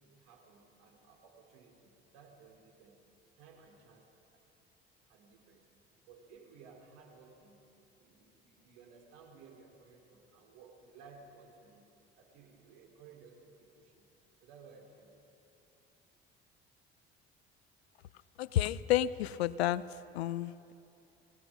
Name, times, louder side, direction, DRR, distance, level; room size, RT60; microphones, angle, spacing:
voice 1, 0.0-3.0 3.4-4.4 5.1-5.7 6.0-7.7 7.9-11.9 12.2-14.1 14.4-15.2, right 5 dB, 70° right, 2 dB, 3.5 m, -58 dB
voice 2, 18.4-19.8 20.1-20.7, left 13 dB, 85° left, 19 dB, 0.6 m, -30 dB
24.0 x 17.5 x 6.1 m, 2.8 s
hypercardioid pair, 60°, 31 cm